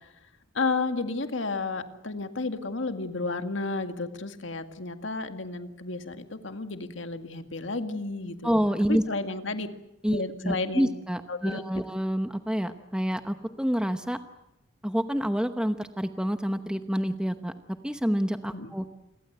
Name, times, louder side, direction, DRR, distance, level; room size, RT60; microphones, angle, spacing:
voice 1, 0.5-8.6 8.9-9.7 10.1-10.9 11.3-11.6 18.5-18.7, left 3 dB, 75° left, 7 dB, 2.0 m, -32 dB
voice 2, 8.4-9.0 10.0-14.2 14.8-17.5 17.8-18.8, equal, 5° right, 8 dB, 0.9 m, -28 dB
28.5 x 22.5 x 8.0 m, 0.87 s
head